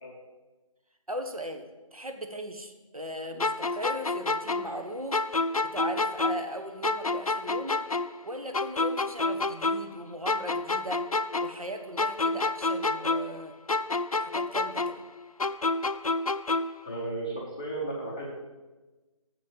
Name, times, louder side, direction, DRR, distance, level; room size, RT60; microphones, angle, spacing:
voice 1, 1.1-7.8 8.2-11.0 11.4-13.5 14.1-15.0, equal, 85° right, 5 dB, 1.2 m, -38 dB
sound 1, 3.4-6.6 6.8-10.0 10.3-13.4 13.7-16.8, left 3 dB, 85° left, 0.5 m, -29 dB
voice 2, 16.8-18.3, right 2 dB, 10° left, -5 dB, 0.6 m, -34 dB
7.3 x 6.3 x 7.3 m, 1.2 s
figure-of-eight pair, 155°, 18 cm